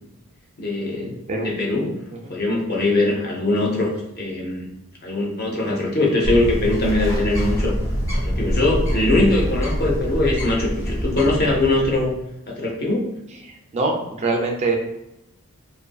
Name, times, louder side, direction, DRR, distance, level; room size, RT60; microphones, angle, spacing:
voice 1, 0.6-2.0 2.3-4.7 5.0-7.7 8.1-12.1 12.5-13.1, left 2 dB, 45° left, -2 dB, 0.6 m, -22 dB
Bird, 6.2-12.2, equal, 15° left, 0.9 m, -25 dB
voice 2, 13.4-14.8, right 3 dB, 30° right, 1 dB, 0.3 m, -24 dB
2.6 x 2.5 x 2.2 m, 0.87 s
head